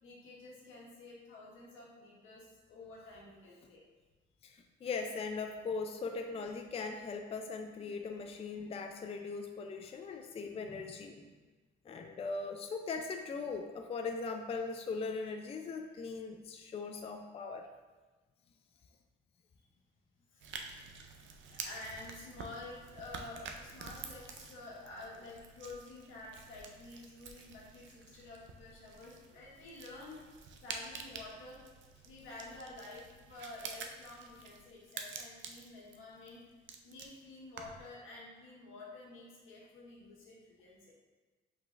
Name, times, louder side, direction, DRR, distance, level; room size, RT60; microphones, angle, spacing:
voice 1, 0.0-3.8 7.4-7.5 7.8-7.9 10.7-10.8 11.2-11.3 20.3-20.5 21.4-31.6 32.0-36.4 36.8-40.9, left 2 dB, 85° left, -4 dB, 1.4 m, -50 dB
voice 2, 4.4-11.1 11.9-17.7, left 4 dB, 30° left, 4 dB, 0.4 m, -40 dB
sound 1, 20.4-37.9, right 5 dB, 70° right, 0.5 m, -49 dB
5.3 x 3.9 x 2.5 m, 1.3 s
cardioid pair, 90°, 20 cm